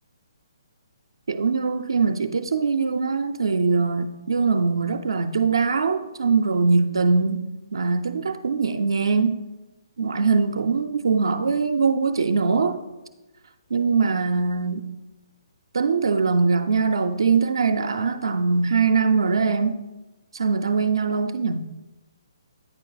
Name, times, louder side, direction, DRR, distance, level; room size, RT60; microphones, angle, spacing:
voice 1, 1.3-7.4 7.7-9.4 10.0-12.8 13.7-14.8 15.7-19.8 20.3-21.7, right 4 dB, 75° right, 0.4 m, -22 dB
9.0 x 4.5 x 3.9 m
figure-of-eight pair, 140°, 3 cm